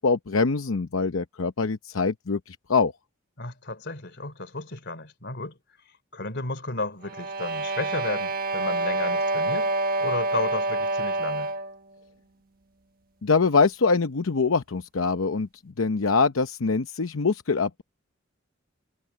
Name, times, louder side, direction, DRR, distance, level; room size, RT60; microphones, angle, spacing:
voice 1, 0.0-2.9 13.2-15.5 15.8-17.8, left 4 dB, 85° left, 0.8 m, -24 dB
voice 2, 3.4-5.6 6.1-9.7 10.0-11.5, left 2 dB, 55° left, 3.2 m, -33 dB
sound 1, 7.0-11.8, right 2 dB, 45° right, 1.3 m, -27 dB
head